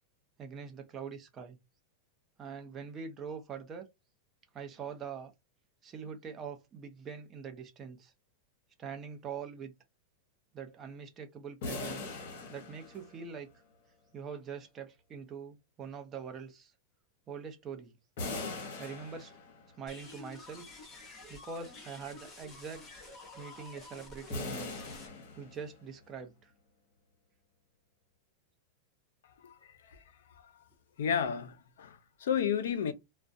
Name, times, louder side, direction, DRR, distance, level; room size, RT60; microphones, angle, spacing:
voice 1, 0.4-1.6 2.4-3.9 4.5-5.3 5.8-8.1 8.8-9.7 10.5-12.2 12.5-13.5 14.1-16.7 17.3-18.0 18.8-19.3 19.8-20.7 21.3-23.1 23.4-24.7 25.4-26.5, right 6 dB, 20° right, 0.5 m, -43 dB
sound 1, 11.6-13.5 18.2-19.8 24.3-25.9, left 3 dB, 55° left, 0.9 m, -40 dB
sound 2, 19.9-25.1, left 3 dB, 20° left, 0.8 m, -50 dB
voice 2, 31.0-32.9, left 8 dB, 85° left, 0.5 m, -31 dB
2.3 x 2.1 x 2.5 m
supercardioid pair, 155°, 0 cm